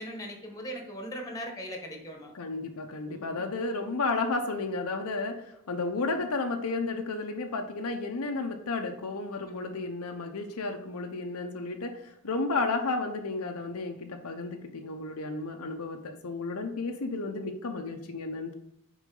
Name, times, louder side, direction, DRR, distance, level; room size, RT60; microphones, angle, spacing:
voice 1, 0.0-2.3 3.1-3.4, equal, 15° left, 2 dB, 1.2 m, -39 dB
voice 2, 2.3-18.5, left 3 dB, 80° left, 5 dB, 0.7 m, -32 dB
6.1 x 4.8 x 3.8 m, 0.79 s
head